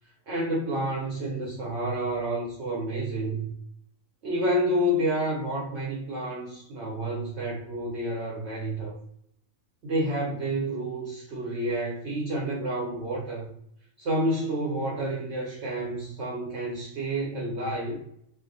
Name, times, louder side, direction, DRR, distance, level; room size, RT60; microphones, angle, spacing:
voice 1, 0.3-3.5 4.2-8.9 9.8-13.4 14.0-18.0, right 1 dB, 65° right, -4 dB, 0.8 m, -29 dB
2.3 x 2.1 x 2.5 m, 0.72 s
omnidirectional pair, 1.5 m